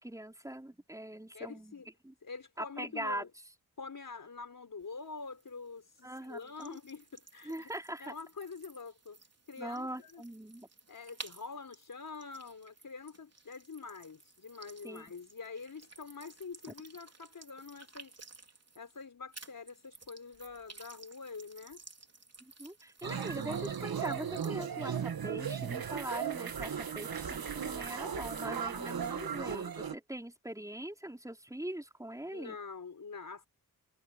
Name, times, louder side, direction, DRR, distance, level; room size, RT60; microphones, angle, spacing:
voice 1, 0.0-1.7 2.0-2.1 2.6-3.2 6.0-6.8 7.4-8.1 9.6-10.7 14.8-15.1 22.4-32.6, right 1 dB, 10° right, 4.6 m, -42 dB
voice 2, 1.3-1.9 2.2-3.3 3.8-7.7 8.0-9.2 9.5-10.2 10.9-18.3 18.7-21.8 32.3-33.5, left 4 dB, 55° left, 4.4 m, -46 dB
sound 1, 4.8-19.0 19.3-24.6, right 3 dB, 40° right, 4.0 m, -55 dB
sound 2, 23.0-29.9, right 7 dB, 65° right, 1.6 m, -36 dB
wide cardioid pair, 100°, 39 cm